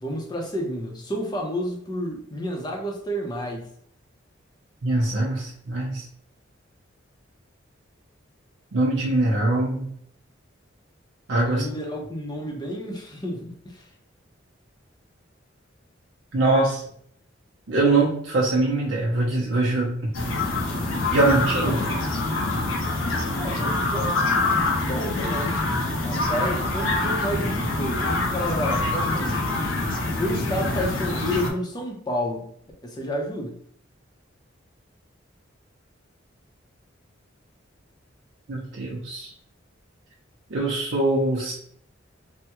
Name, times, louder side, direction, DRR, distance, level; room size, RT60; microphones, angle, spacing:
voice 1, 0.0-3.7 11.4-13.9 21.5-21.8 23.4-25.6 26.0-29.4 30.2-32.5 32.8-33.6, equal, 20° left, 1 dB, 0.6 m, -30 dB
voice 2, 4.8-6.0 8.7-9.9 11.3-11.6 16.3-16.8 17.7-20.1 21.1-21.8 38.5-39.3 40.5-41.5, right 2 dB, 75° right, -4 dB, 0.6 m, -23 dB
sound 1, 20.1-31.5, left 2 dB, 85° left, 0.7 m, -25 dB
3.4 x 2.1 x 2.9 m, 0.65 s
head